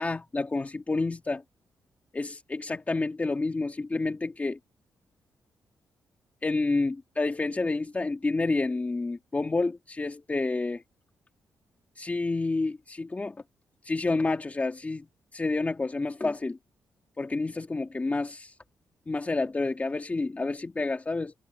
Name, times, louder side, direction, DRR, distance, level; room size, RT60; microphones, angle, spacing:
voice 1, 0.0-1.4 2.1-4.6 6.4-10.8 12.0-13.4 13.8-15.1 15.3-16.6 17.2-18.5 19.1-21.3, left 3 dB, 25° left, 2.5 m, -29 dB
cardioid pair, 95°, 6 cm